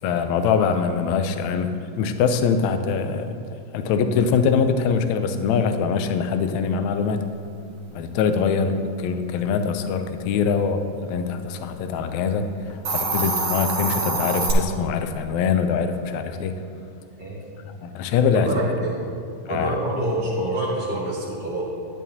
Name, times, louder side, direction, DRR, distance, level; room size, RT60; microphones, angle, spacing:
voice 1, 0.0-7.2 7.9-16.6 17.7-18.5 19.5-19.8, left 6 dB, 80° left, 8 dB, 1.8 m, -23 dB
Hiss, 12.7-14.5, right 3 dB, 50° right, 1.9 m, -25 dB
voice 2, 18.3-18.9 19.5-21.6, right 1 dB, 20° right, -7 dB, 1.4 m, -26 dB
11.0 x 10.0 x 2.8 m, 2.4 s
omnidirectional pair, 3.5 m